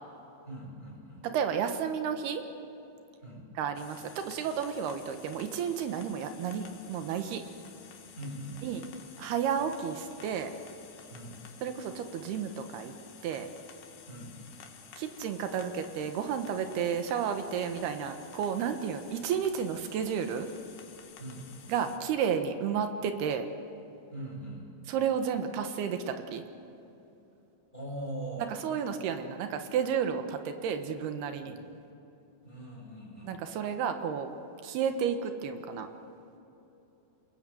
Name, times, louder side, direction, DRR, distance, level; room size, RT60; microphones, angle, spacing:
voice 1, 0.4-1.2 3.2-3.5 8.1-8.8 11.1-11.4 14.1-14.4 21.2-21.4 24.1-24.7 27.7-28.5 31.4-31.7 32.4-33.4, right 1 dB, 10° left, -4 dB, 7.7 m, -41 dB
voice 2, 1.2-2.4 3.6-7.4 8.6-8.9 9.2-10.5 11.6-13.0 13.2-13.5 15.0-20.5 21.7-23.5 24.9-26.4 28.6-31.6 33.2-34.3 34.6-35.9, right 7 dB, 90° right, 7 dB, 3.4 m, -32 dB
sound 1, 3.8-22.0, left 7 dB, 80° left, 3.6 m, -52 dB
28.0 x 20.5 x 7.8 m, 3.0 s
omnidirectional pair, 4.4 m